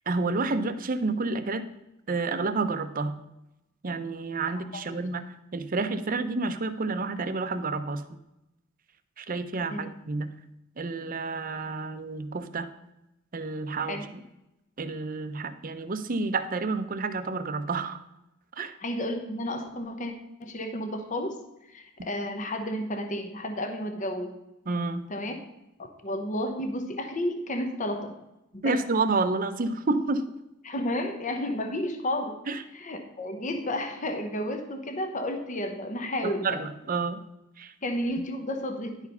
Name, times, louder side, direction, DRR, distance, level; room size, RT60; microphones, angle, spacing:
voice 1, 0.1-1.7 2.1-3.1 3.8-5.3 5.5-8.0 9.2-10.3 10.8-12.7 13.3-14.2 14.8-18.0 18.6-18.7 24.7-25.1 28.6-30.3 32.5-32.6 36.2-37.2 37.6-37.7, right 3 dB, 45° right, 10 dB, 0.6 m, -29 dB
voice 2, 4.7-5.0 9.7-9.9 13.8-14.0 18.8-20.1 20.4-21.3 21.7-24.4 25.1-25.3 25.8-28.1 28.5-28.8 30.6-32.4 32.7-36.6 37.8-39.0, left 1 dB, 40° left, 5 dB, 0.9 m, -32 dB
10.5 x 4.8 x 5.5 m, 0.90 s
head